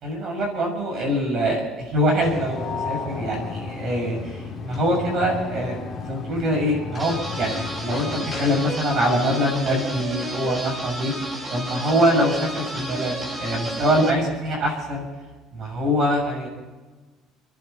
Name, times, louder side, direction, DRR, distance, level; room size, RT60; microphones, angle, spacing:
voice 1, 0.0-11.2 11.5-15.1 15.5-16.5, equal, 40° right, -1 dB, 6.4 m, -24 dB
sound 1, 2.2-8.7, left 4 dB, 25° left, 3.0 m, -33 dB
sound 2, 7.0-14.1, right 1 dB, 15° right, 2.0 m, -32 dB
29.5 x 11.0 x 4.4 m, 1.3 s
cardioid pair, 170°, 0 cm